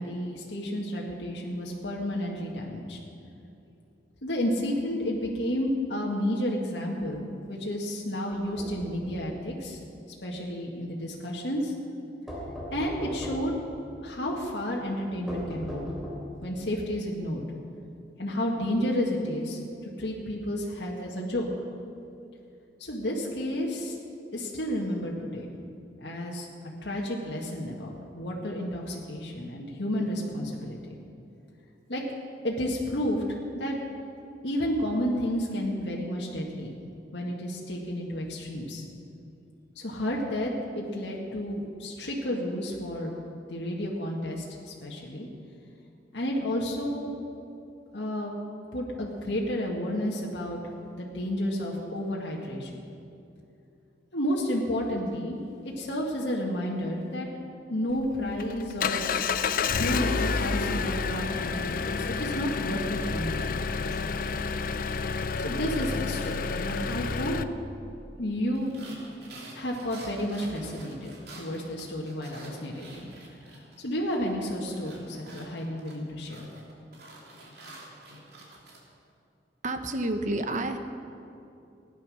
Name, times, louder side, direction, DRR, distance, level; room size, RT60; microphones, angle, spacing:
voice 1, 0.0-3.0 4.2-9.8 10.2-11.7 12.7-13.5 14.0-15.9 16.4-17.4 18.2-21.5 22.8-24.0 24.3-25.5 26.0-26.5 26.8-30.8 31.9-32.0 32.4-33.2 33.5-33.8 34.4-36.7 37.1-38.9 39.8-43.2 43.5-45.3 46.1-47.1 47.9-48.3 48.7-52.9 54.1-55.4 55.8-57.3 57.7-59.1 59.6-64.2 65.4-67.4 68.2-68.7 69.5-73.1 73.8-76.4, equal, 75° left, -2 dB, 1.9 m, -31 dB
sound 1, 8.3-9.3 12.3-13.6 15.3-16.4, equal, ahead, 3.0 m, -37 dB
Engine, 57.9-67.4, left 5 dB, 55° left, 0.5 m, -29 dB
sound 2, 68.5-73.8 74.1-78.8, right 2 dB, 65° right, 3.1 m, -48 dB
voice 2, 79.6-80.8, right 2 dB, 45° right, 7 dB, 1.0 m, -29 dB
16.0 x 10.5 x 6.4 m, 2.7 s
head